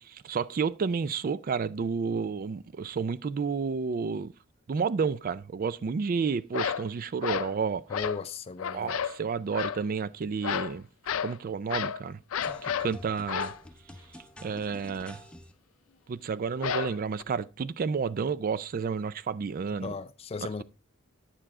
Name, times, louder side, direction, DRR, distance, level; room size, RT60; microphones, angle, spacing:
voice 1, 0.0-4.3 4.7-7.8 8.7-10.9 11.2-12.2 12.6-13.5 14.4-15.2 16.1-19.9, right 5 dB, 45° right, 0.4 m, -31 dB
sound 1, 6.5-6.9 7.2-7.6 7.9-8.2 8.6-9.2 9.5-9.8 10.4-10.8 11.1-11.4 11.7-12.0 12.3-12.9 13.3-13.6 16.6-17.2, left 8 dB, 90° left, 0.5 m, -31 dB
voice 2, 7.9-8.9 19.8-20.6, left 4 dB, 30° left, 0.4 m, -36 dB
sound 2, 12.4-15.5, equal, 5° left, 0.9 m, -48 dB
8.9 x 6.8 x 3.6 m
head